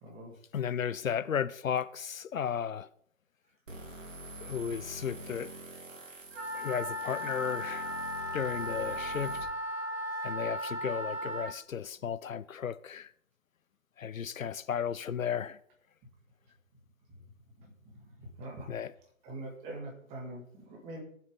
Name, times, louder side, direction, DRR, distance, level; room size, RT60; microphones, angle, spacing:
voice 1, 0.0-0.3 17.6-17.7 18.0-18.7 19.2-21.0, right 1 dB, 15° right, 1.9 m, -44 dB
voice 2, 0.5-2.9 4.4-5.5 6.5-8.0 8.3-9.5 10.2-13.1 14.0-15.6 18.7-18.9, left 8 dB, 75° left, 0.7 m, -34 dB
sound 1, 3.7-9.4, right 1 dB, 65° right, 3.3 m, -46 dB
Wind instrument woodwind instrument, 6.3-11.5, equal, 50° right, 2.4 m, -36 dB
18.5 x 7.7 x 3.6 m
figure-of-eight pair, 150°, 41 cm